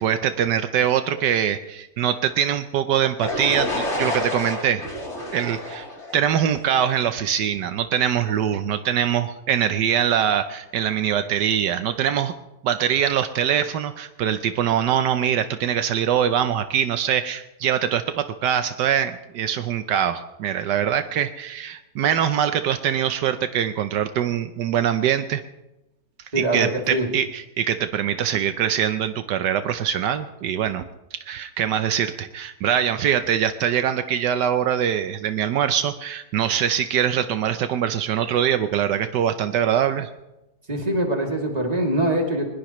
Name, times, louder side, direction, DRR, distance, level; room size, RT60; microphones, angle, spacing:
voice 1, 0.0-4.9 5.3-5.9 6.1-12.3 12.6-25.4 26.4-30.9 31.2-40.1, right 9 dB, 80° right, 9 dB, 1.3 m, -23 dB
sound 1, 3.2-7.1, left 1 dB, 40° left, 3.5 m, -29 dB
voice 2, 26.3-27.1 40.7-42.4, right 1 dB, 20° right, 0 dB, 2.8 m, -23 dB
22.5 x 20.5 x 3.1 m, 0.98 s
omnidirectional pair, 1.8 m